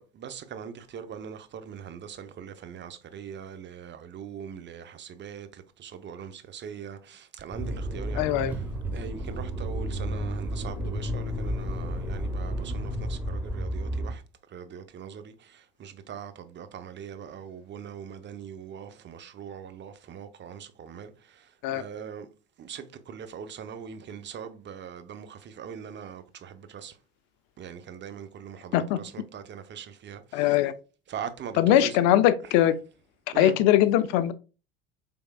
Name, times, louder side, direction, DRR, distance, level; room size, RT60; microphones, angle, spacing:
voice 1, 0.0-8.6 8.9-14.2 14.5-22.3 22.6-27.0 27.6-30.6 31.1-32.0 33.3-33.6, right 7 dB, 40° right, 0.6 m, -41 dB
Motor vehicle (road), 7.5-14.1, equal, 5° right, 0.9 m, -32 dB
voice 2, 8.2-8.5 21.6-21.8 28.7-29.0 30.3-30.7 31.6-32.7 33.4-34.3, left 12 dB, 65° left, 0.5 m, -21 dB
4.6 x 3.5 x 2.2 m
hypercardioid pair, 70°, 30 cm